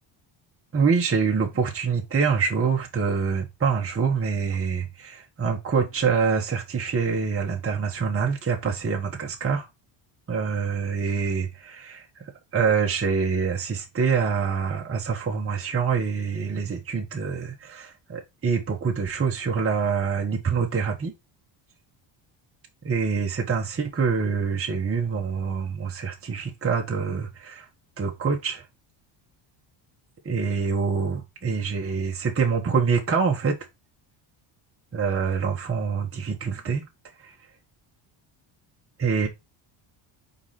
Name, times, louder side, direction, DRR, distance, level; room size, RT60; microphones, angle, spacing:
voice 1, 0.7-9.7 10.3-12.2 12.5-21.1 22.8-27.7 28.0-28.6 30.2-33.6 34.9-36.8 37.2-37.3 39.0-39.3, right 5 dB, 25° right, 1.5 m, -25 dB
4.8 x 4.1 x 5.8 m
cardioid pair, 105°, 50 cm